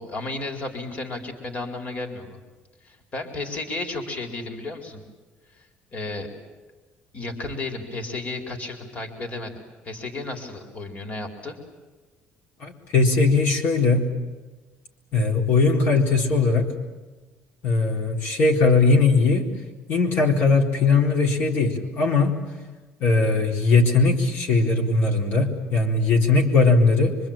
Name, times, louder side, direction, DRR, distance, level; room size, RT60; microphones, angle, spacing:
voice 1, 0.0-2.4 2.8-5.0 5.5-5.7 5.9-6.3 7.1-9.5 9.8-11.6, left 2 dB, 35° left, 4 dB, 4.4 m, -33 dB
voice 2, 12.6-14.1 15.1-16.7 17.6-19.5 19.9-22.4 23.0-27.2, left 3 dB, 65° left, 1 dB, 4.2 m, -19 dB
25.5 x 25.5 x 9.0 m, 1.2 s
cardioid pair, 135°, 4 cm